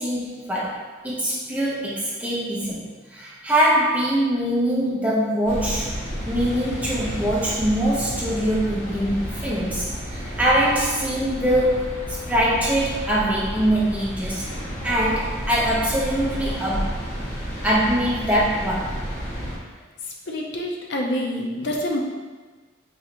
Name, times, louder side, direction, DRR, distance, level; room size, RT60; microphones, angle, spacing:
voice 1, 0.0-5.9 6.3-14.5 14.8-19.0, equal, 10° right, -6 dB, 0.7 m, -23 dB
sound 1, 5.4-19.6, equal, 35° left, 1.2 m, -31 dB
voice 2, 20.3-22.0, left 1 dB, 60° left, 0 dB, 0.5 m, -26 dB
4.0 x 3.1 x 2.9 m, 1.3 s
head